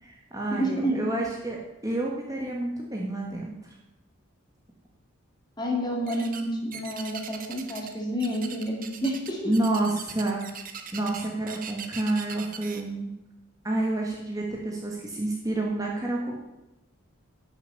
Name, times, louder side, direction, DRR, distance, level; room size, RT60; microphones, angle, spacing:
voice 1, 0.0-3.5 9.4-10.5 10.9-13.1 13.6-16.4, right 2 dB, 15° right, -2 dB, 1.5 m, -29 dB
voice 2, 0.5-1.0 5.6-9.5, equal, 20° left, 1 dB, 2.2 m, -29 dB
sound 1, 6.1-6.4 6.7-7.9 8.2-12.8, right 7 dB, 40° right, 1.1 m, -40 dB
11.0 x 7.1 x 8.3 m, 0.98 s
head